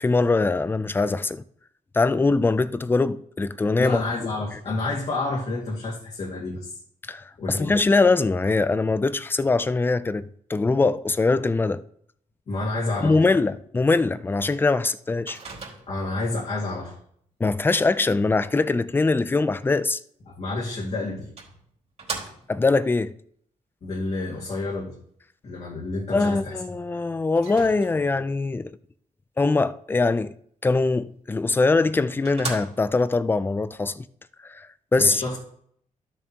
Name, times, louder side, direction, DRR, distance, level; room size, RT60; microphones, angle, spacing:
voice 1, 0.0-1.4 1.9-4.0 7.1-11.8 13.0-15.4 17.4-20.0 22.5-23.1 26.1-28.8 29.4-30.3 30.6-34.1 34.4-34.7 34.9-35.2, left 3 dB, 15° left, 0.4 m, -22 dB
voice 2, 3.8-6.8 7.4-7.7 12.5-13.4 15.9-17.0 20.3-21.3 23.8-25.0 25.4-26.6 35.0-35.4, left 2 dB, 50° left, 2.1 m, -29 dB
Microwave oven, 15.3-16.2 20.5-20.6 21.4-22.7 27.3-28.2 31.4-31.5 31.9-32.0 32.2-33.1, right 4 dB, 50° right, 3.4 m, -37 dB
13.0 x 7.1 x 2.9 m
cardioid pair, 110°, 14 cm